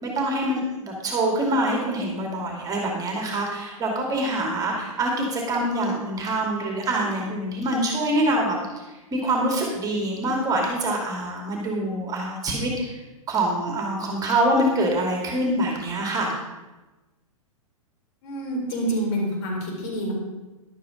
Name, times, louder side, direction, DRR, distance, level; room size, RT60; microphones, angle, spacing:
voice 1, 0.0-8.6 9.1-13.0 13.3-16.3, right 1 dB, 20° right, 0 dB, 2.3 m, -25 dB
voice 2, 18.2-20.1, right 1 dB, 50° left, -1 dB, 4.4 m, -27 dB
11.5 x 8.4 x 5.1 m, 1.1 s
figure-of-eight pair, 115°, 18 cm